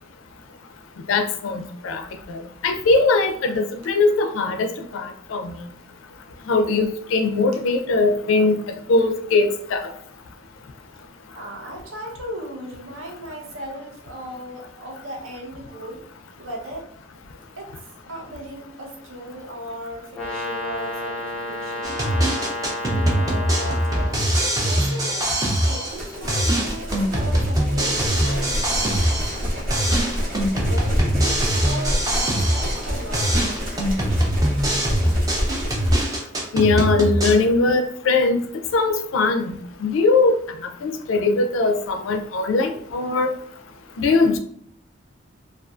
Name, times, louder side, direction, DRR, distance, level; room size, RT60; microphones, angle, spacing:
voice 1, 1.1-2.0 2.3-5.6 6.5-9.9 36.5-38.4 38.7-40.4 40.6-43.3 44.0-44.4, left 3 dB, 80° left, 7 dB, 0.4 m, -21 dB
voice 2, 11.3-16.1 16.4-16.9 17.6-17.8 18.1-24.2 24.6-25.3 25.6-30.0 30.6-33.4, equal, 85° right, 1 dB, 0.6 m, -37 dB
Brass instrument, 20.1-24.2, left 1 dB, 5° left, 0.8 m, -30 dB
sound 1, 21.8-26.0 26.3-29.4 29.7-32.9 33.1-37.3, right 1 dB, 20° right, 0.4 m, -22 dB
sound 2, 25.9-36.0, equal, 45° right, 0.7 m, -28 dB
2.5 x 2.3 x 2.3 m, 0.65 s
head